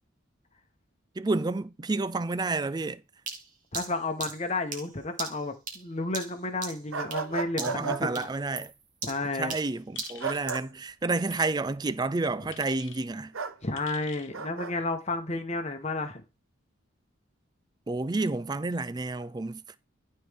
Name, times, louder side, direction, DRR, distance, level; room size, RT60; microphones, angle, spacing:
voice 1, 1.2-3.0 7.6-8.7 9.3-13.3 17.9-19.8, right 3 dB, 20° right, 0.4 m, -30 dB
sound 1, 3.3-7.3 7.6-7.9 8.1-10.7, right 5 dB, 40° right, 2.3 m, -39 dB
voice 2, 3.7-8.3 9.0-9.5 13.6-16.2, left 2 dB, 30° left, 1.2 m, -32 dB
sound 2, 6.9-8.0 10.2-10.6 13.3-13.6 14.3-14.7, right 5 dB, 80° right, 1.0 m, -33 dB
sound 3, 9.9-10.5 11.3-11.5 12.5-13.0 13.7-14.3, left 8 dB, 60° left, 1.3 m, -47 dB
13.0 x 4.4 x 3.6 m
head